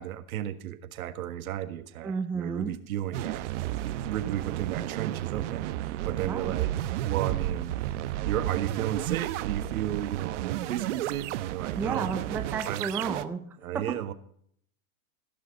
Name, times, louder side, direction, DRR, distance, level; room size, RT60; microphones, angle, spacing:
voice 1, 0.0-3.5 3.8-6.7 7.0-7.8 8.2-12.1 12.6-12.9 13.6-14.1, right 12 dB, 70° right, 10 dB, 1.6 m, -34 dB
voice 2, 2.0-2.8 6.3-6.6 11.8-13.4, right 5 dB, 5° right, 6 dB, 0.4 m, -32 dB
sound 1, 3.1-13.3, right 13 dB, 55° right, 0.9 m, -32 dB
16.0 x 6.6 x 5.2 m, 0.64 s
hypercardioid pair, 140°, 44 cm